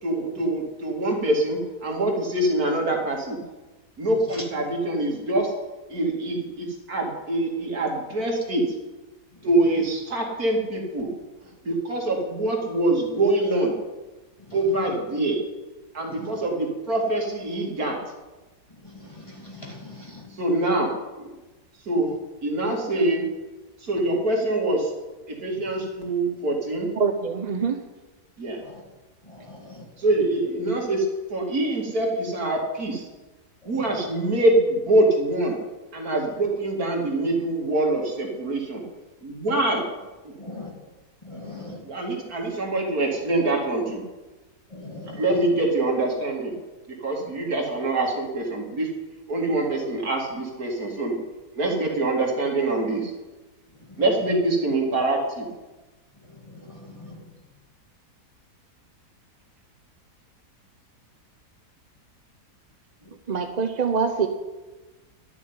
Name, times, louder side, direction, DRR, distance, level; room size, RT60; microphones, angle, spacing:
voice 1, 0.0-3.4 4.0-5.5 5.9-8.7 9.4-11.1 11.6-13.8 14.5-15.4 15.9-18.0 20.3-21.3 21.8-22.1 22.4-23.3 23.8-24.9 25.3-26.9 28.4-28.6 30.0-33.1 33.6-35.6 35.9-38.8 39.2-39.8 40.2-40.3 41.3-41.4 41.8-44.0 45.2-46.5 46.9-48.9 49.3-51.2 51.6-53.1 54.0-55.5, right 2 dB, 60° right, 2.9 m, -24 dB
voice 2, 16.1-16.4 18.7-20.4 25.5-25.6 28.5-28.8 29.2-29.9 33.6-34.1 40.4-40.7 41.2-41.8 44.7-45.5 47.2-47.3 53.7-54.0 56.2-57.3 63.0-63.1, left 2 dB, 20° left, 2.3 m, -42 dB
voice 3, 27.0-27.8 63.3-64.3, right 5 dB, 40° right, 0.6 m, -24 dB
12.0 x 7.1 x 9.6 m
omnidirectional pair, 1.8 m